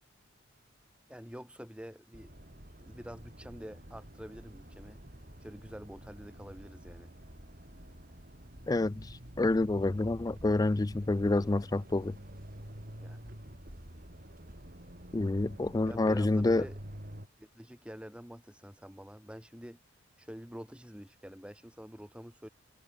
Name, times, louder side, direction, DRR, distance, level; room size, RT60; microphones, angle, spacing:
voice 1, 1.1-2.3 2.8-5.0 5.4-7.1 13.0-13.2 15.9-16.8 17.4-19.8 20.2-22.5, equal, 5° right, 4.8 m, -47 dB
sound 1, 2.1-17.3, equal, 45° right, 5.9 m, -49 dB
voice 2, 8.7-12.2 15.1-16.7, left 2 dB, 20° left, 0.4 m, -28 dB
head